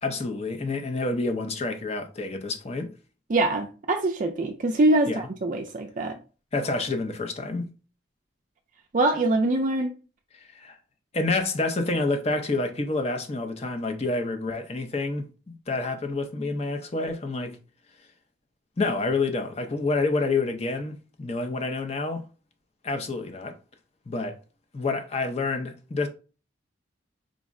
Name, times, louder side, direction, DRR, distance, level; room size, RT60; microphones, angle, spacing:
voice 1, 0.0-2.9 5.1-5.3 6.5-7.7 10.3-10.8 11.1-17.6 18.8-22.2 22.8-23.5 24.1-24.4 24.7-26.1, left 3 dB, 30° left, 0.6 m, -28 dB
voice 2, 3.3-6.2 8.9-9.9, right 2 dB, 40° right, 0.4 m, -24 dB
5.0 x 2.1 x 3.6 m
head